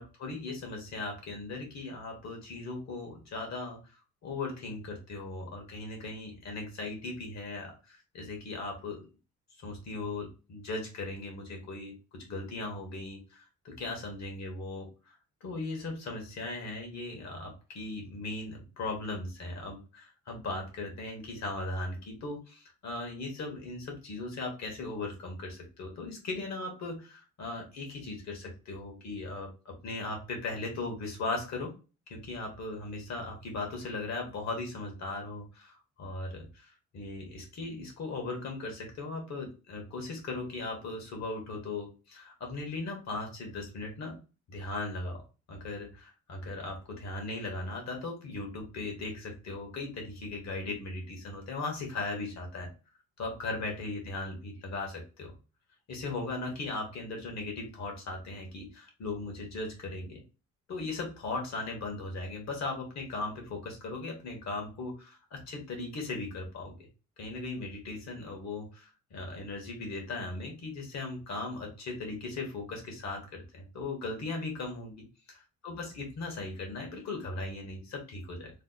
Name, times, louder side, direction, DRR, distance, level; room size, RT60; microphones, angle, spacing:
voice 1, 0.0-3.8 4.2-9.1 9.6-31.7 32.1-44.2 44.5-45.2 45.5-52.7 53.2-55.3 55.9-60.2 60.7-66.8 67.2-75.0 75.6-78.5, left 2 dB, 60° left, 2 dB, 1.5 m, -38 dB
3.3 x 2.1 x 4.0 m, 0.32 s
cardioid pair, 90°, 30 cm